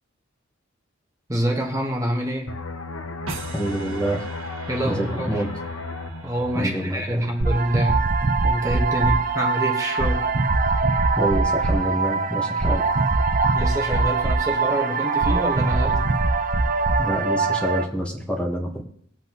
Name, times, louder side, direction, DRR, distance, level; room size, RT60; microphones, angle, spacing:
voice 1, 1.3-2.6 4.7-5.4 6.2-8.0 8.4-10.3 13.5-16.1, equal, 15° right, 1.4 m, -26 dB
sound 1, 2.5-7.9 8.2-8.4, left 3 dB, 85° left, 1.0 m, -35 dB
sound 2, 3.3-8.5, right 3 dB, 80° right, 1.6 m, -41 dB
voice 2, 3.5-4.2 4.8-5.5 6.5-7.2 11.1-12.8 17.0-18.8, right 1 dB, 5° left, 1.3 m, -26 dB
sound 3, 7.4-17.8, right 3 dB, 40° right, 0.7 m, -22 dB
19.5 x 7.8 x 3.1 m
head